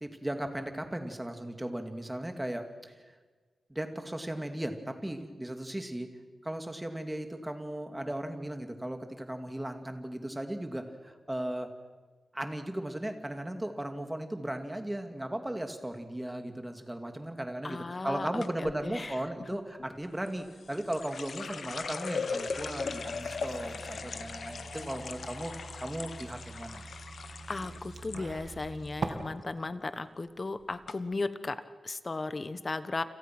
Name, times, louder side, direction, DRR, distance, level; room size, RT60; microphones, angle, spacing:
voice 1, 0.0-3.2 3.7-6.1 6.4-11.7 12.3-25.5 25.8-26.8, right 1 dB, 10° right, 6 dB, 2.4 m, -36 dB
voice 2, 17.6-19.2 27.5-33.0, left 3 dB, 30° left, 12 dB, 1.2 m, -36 dB
sound 1, 18.4-18.8 20.3-28.2 28.5-29.1 29.4-29.8 30.4-30.5 30.9-31.0, left 5 dB, 65° left, 1.3 m, -39 dB
sound 2, 22.5-29.1, right 4 dB, 55° right, 2.5 m, -43 dB
29.5 x 27.5 x 6.2 m, 1.4 s
wide cardioid pair, 130°, 0 cm